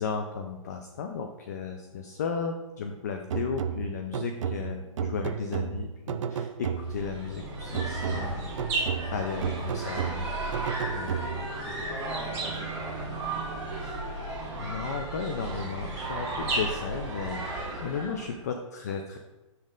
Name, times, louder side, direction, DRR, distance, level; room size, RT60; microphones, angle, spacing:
voice 1, 0.0-8.7 9.1-10.2 10.9-11.1 13.8-14.0 14.6-17.5 17.8-19.2, left 5 dB, 30° left, 5 dB, 0.4 m, -34 dB
sound 1, 3.3-7.2 7.7-11.6, right 7 dB, 65° right, 0.4 m, -33 dB
sound 2, 6.8-18.3, right 2 dB, 15° right, 1.7 m, -34 dB
voice 2, 9.8-10.2 11.2-13.1, equal, 5° left, -6 dB, 1.4 m, -42 dB
6.3 x 5.4 x 3.7 m, 1.2 s
hypercardioid pair, 170°, 17 cm